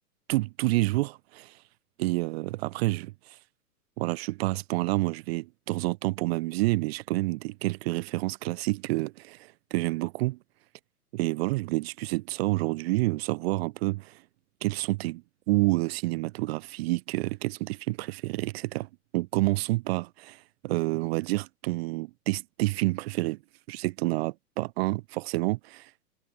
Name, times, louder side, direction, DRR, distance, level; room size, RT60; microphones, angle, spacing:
voice 1, 0.3-1.6 2.0-3.4 4.0-10.4 11.1-14.2 14.6-23.4 23.7-25.9, right 21 dB, 40° right, 1.3 m, -29 dB
hypercardioid pair, 115°, 47 cm